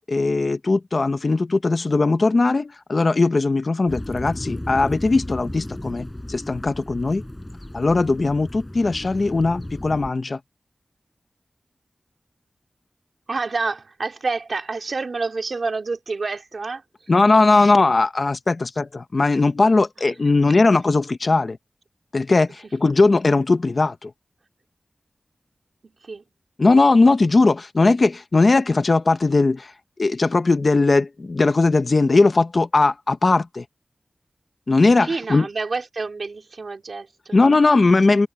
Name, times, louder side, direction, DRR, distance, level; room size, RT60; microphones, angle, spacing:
voice 1, 0.1-7.2 7.7-10.4 17.1-21.6 22.1-24.1 26.6-29.7 30.0-33.6 34.7-35.5 37.3-38.3, left 3 dB, 45° left, 1.1 m, -19 dB
sound 1, 3.9-10.1, left 1 dB, 10° left, 6.6 m, -34 dB
voice 2, 13.3-17.1 20.0-20.2 22.6-22.7 25.8-26.2 35.0-37.4, right 4 dB, 60° right, 3.3 m, -28 dB
wide cardioid pair, 105°, 0 cm